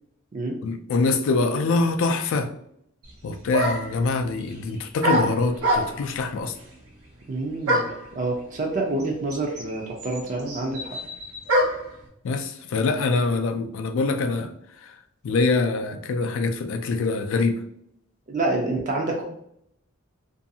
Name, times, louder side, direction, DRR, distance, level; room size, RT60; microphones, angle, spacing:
voice 1, 0.6-2.5 3.2-6.5 12.2-14.5 15.2-17.6, left 3 dB, 60° left, 8 dB, 0.3 m, -24 dB
sound 1, 3.0-3.1 3.5-4.0 5.0-6.2 7.7-8.1 9.0-9.1 9.3-11.9, equal, 90° right, 0.7 m, -24 dB
voice 2, 7.3-11.0 18.3-19.2, right 2 dB, 35° right, 0 dB, 0.4 m, -27 dB
2.6 x 2.3 x 2.6 m, 0.72 s
head